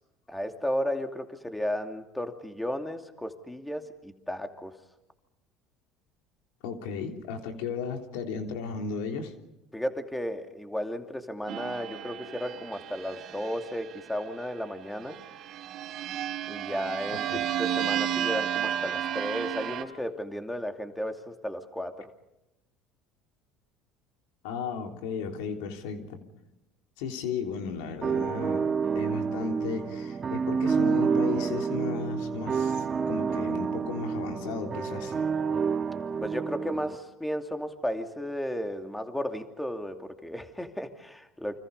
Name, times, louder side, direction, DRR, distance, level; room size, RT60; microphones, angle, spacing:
voice 1, 0.3-4.8 9.7-15.2 16.5-22.1 36.2-41.6, equal, 5° left, 5 dB, 2.7 m, -34 dB
voice 2, 6.6-9.3 17.3-17.4 24.4-26.2 27.0-35.1, left 5 dB, 80° left, 4 dB, 3.4 m, -35 dB
sound 1, 11.5-14.2 15.0-19.8, right 10 dB, 55° right, 3.2 m, -32 dB
sound 2, 28.0-37.0, right 6 dB, 35° right, 2.3 m, -29 dB
29.5 x 26.0 x 5.5 m, 0.93 s
supercardioid pair, 90°, 0 cm